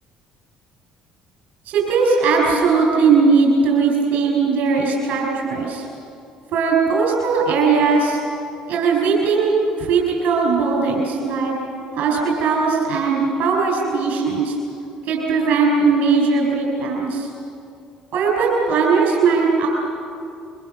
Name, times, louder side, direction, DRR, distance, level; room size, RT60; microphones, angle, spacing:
voice 1, 1.7-5.8 6.5-8.2 8.7-11.5 11.9-14.6 15.1-17.3 18.1-19.7, right 4 dB, 65° right, -1 dB, 6.1 m, -18 dB
24.5 x 24.0 x 6.8 m, 2.5 s
hypercardioid pair, 65°, 3 cm